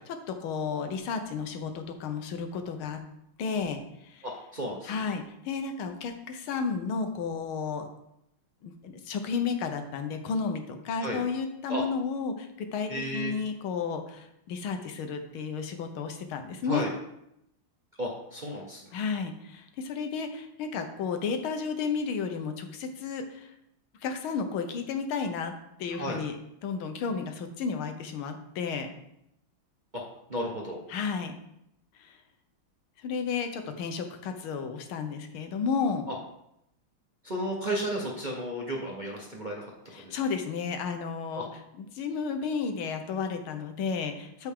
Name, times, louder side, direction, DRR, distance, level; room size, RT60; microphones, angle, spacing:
voice 1, 0.3-3.0 3.4-4.2 4.8-7.9 8.6-16.9 18.9-23.5 24.0-25.5 25.8-26.3 26.6-28.9 30.9-31.3 32.0-32.2 33.0-36.0 39.9-41.5 41.8-44.5, left 5 dB, 80° left, 6 dB, 1.7 m, -32 dB
voice 2, 4.2-4.9 11.0-11.2 11.7-11.8 12.9-13.3 16.7-16.9 18.0-18.8 25.9-26.2 29.9-30.0 30.3-30.8 37.2-39.7 39.9-40.2 41.4-41.5, equal, 35° right, -2 dB, 0.8 m, -33 dB
13.0 x 4.5 x 3.6 m, 0.81 s
omnidirectional pair, 2.3 m